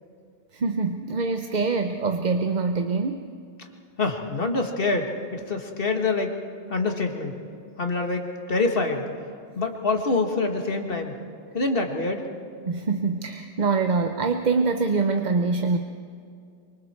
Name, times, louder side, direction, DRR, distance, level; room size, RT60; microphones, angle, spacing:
voice 1, 0.5-3.3 12.7-15.8, right 4 dB, 45° right, 6 dB, 0.9 m, -24 dB
voice 2, 4.0-6.3 6.7-7.4 7.8-9.0 9.6-11.1 11.5-12.2, left 3 dB, 60° left, 3 dB, 2.0 m, -25 dB
25.0 x 24.0 x 4.5 m, 2.3 s
omnidirectional pair, 1.1 m